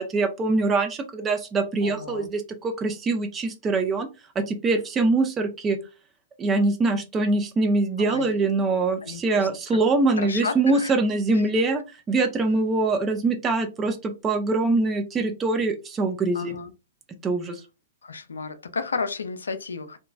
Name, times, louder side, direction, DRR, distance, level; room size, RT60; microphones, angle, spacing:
voice 1, 0.0-4.1 4.4-5.8 6.4-16.5 17.2-17.6, right 3 dB, 15° right, 0.4 m, -23 dB
voice 2, 1.8-2.3 8.0-8.4 9.0-9.5 10.2-11.0 11.3-11.5 16.3-16.7 18.0-20.0, left 4 dB, 65° left, 0.4 m, -32 dB
2.9 x 2.2 x 2.4 m
figure-of-eight pair, 110°, 0 cm